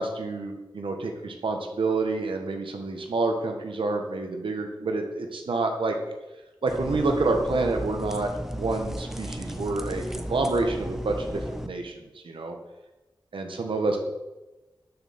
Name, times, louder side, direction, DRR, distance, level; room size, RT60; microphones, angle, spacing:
voice 1, 0.0-6.0 6.6-12.6 13.3-14.0, right 3 dB, 85° right, 4 dB, 1.5 m, -28 dB
sound 1, 6.7-11.7, equal, 5° right, 0.8 m, -35 dB
11.5 x 7.0 x 4.4 m, 1.1 s
wide cardioid pair, 95°, 9 cm